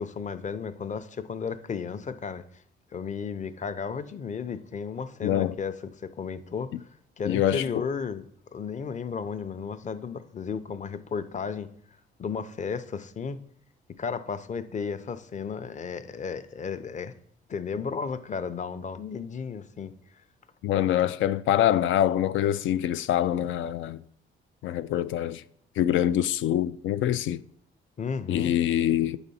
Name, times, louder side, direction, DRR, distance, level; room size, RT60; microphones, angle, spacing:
voice 1, 0.0-2.4 2.9-6.9 7.2-8.2 8.5-11.7 12.2-13.4 14.0-17.1 17.5-19.9 20.7-20.8 28.0-28.5, left 6 dB, 40° left, 0.7 m, -34 dB
voice 2, 5.2-5.5 7.3-7.7 20.6-24.0 24.6-25.4 25.8-27.4 28.3-29.2, left 11 dB, 75° left, 0.4 m, -25 dB
9.1 x 4.0 x 5.5 m
cardioid pair, 90°, 20 cm